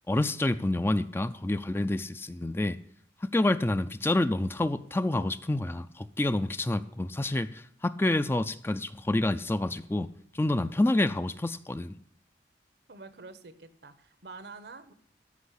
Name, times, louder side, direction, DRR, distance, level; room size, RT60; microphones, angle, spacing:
voice 1, 0.1-2.8 3.2-10.1 10.3-12.0, left 2 dB, 15° left, 0.4 m, -28 dB
voice 2, 12.9-14.9, right 3 dB, 70° right, 1.0 m, -47 dB
13.5 x 5.3 x 8.3 m
head